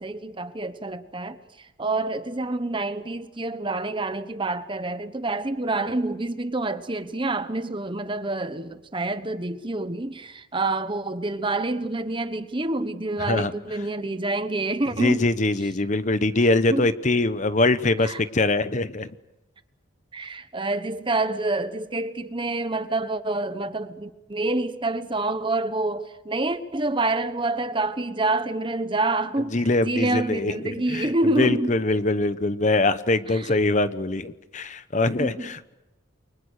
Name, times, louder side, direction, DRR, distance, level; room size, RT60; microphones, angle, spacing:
voice 1, 0.0-15.3 16.7-16.9 18.0-18.2 20.1-31.8 33.3-33.5 35.2-35.5, right 2 dB, 25° right, 1.1 m, -27 dB
voice 2, 13.2-13.5 15.0-19.1 29.5-31.1 31.4-35.7, left 2 dB, 35° left, 0.9 m, -23 dB
29.5 x 24.0 x 6.6 m
head